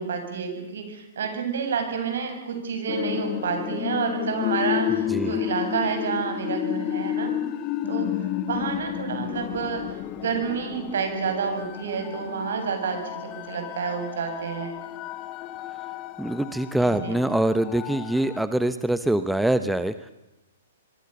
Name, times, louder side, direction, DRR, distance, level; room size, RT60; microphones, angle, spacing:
voice 1, 0.0-7.4 7.9-8.1 8.4-9.8 10.1-14.7 16.8-17.1, right 6 dB, 65° right, 5 dB, 7.9 m, -29 dB
sound 1, 2.9-18.4, left 12 dB, 35° left, 1.4 m, -31 dB
voice 2, 4.9-5.4 16.2-20.1, right 1 dB, 5° right, 11 dB, 1.0 m, -24 dB
25.0 x 24.0 x 7.0 m, 0.98 s
hypercardioid pair, 120°, 0 cm